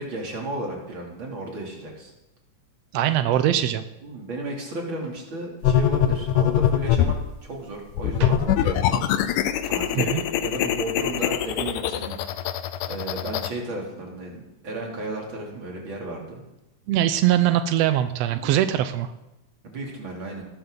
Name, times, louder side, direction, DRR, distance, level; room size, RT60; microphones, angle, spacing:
voice 1, 0.0-2.1 4.0-9.1 9.6-12.2 12.9-16.4 18.3-18.5 19.6-20.4, right 2 dB, 40° right, -1 dB, 3.5 m, -34 dB
voice 2, 2.9-3.8 8.2-8.3 10.0-10.2 16.9-19.1, right 12 dB, 80° right, 9 dB, 1.5 m, -22 dB
sound 1, 5.6-7.2 7.9-13.5, left 10 dB, 80° left, 2.2 m, -23 dB
20.0 x 12.5 x 3.9 m, 0.92 s
omnidirectional pair, 3.8 m